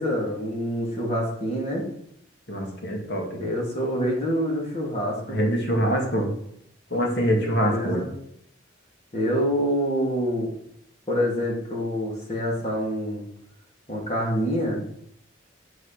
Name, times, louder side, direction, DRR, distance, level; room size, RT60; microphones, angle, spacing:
voice 1, 0.0-1.9 3.4-5.4 7.5-8.1 9.1-10.5 11.1-13.2 13.9-14.9, equal, 35° left, -2 dB, 2.9 m, -26 dB
voice 2, 2.5-3.4 5.3-6.3 6.9-8.0, equal, 55° left, 1 dB, 2.8 m, -24 dB
10.5 x 7.8 x 5.9 m, 0.71 s
head